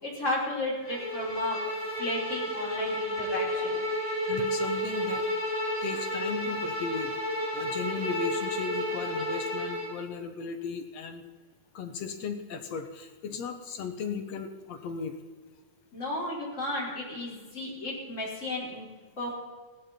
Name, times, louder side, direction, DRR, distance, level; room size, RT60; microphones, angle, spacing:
voice 1, 0.0-1.6 2.0-3.8 15.9-18.9 19.2-19.3, left 1 dB, 20° left, -4 dB, 5.2 m, -33 dB
Bowed string instrument, 0.8-10.0, equal, 5° right, 3.5 m, -31 dB
voice 2, 4.3-5.3 5.8-11.2 11.7-15.2, left 6 dB, 65° left, 6 dB, 1.9 m, -36 dB
17.0 x 15.5 x 4.4 m, 1.4 s
omnidirectional pair, 4.1 m